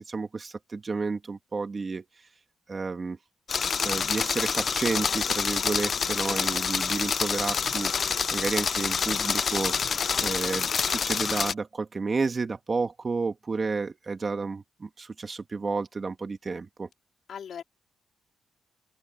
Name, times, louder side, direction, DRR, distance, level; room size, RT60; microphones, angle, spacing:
voice 1, 0.1-2.1 2.7-3.2 3.8-16.9, right 4 dB, 30° right, 2.1 m, -31 dB
sound 1, 3.5-11.5, left 6 dB, 45° left, 0.6 m, -27 dB
voice 2, 6.2-6.6 17.3-17.6, left 8 dB, 60° left, 4.2 m, -40 dB
cardioid pair, 110°, 0 cm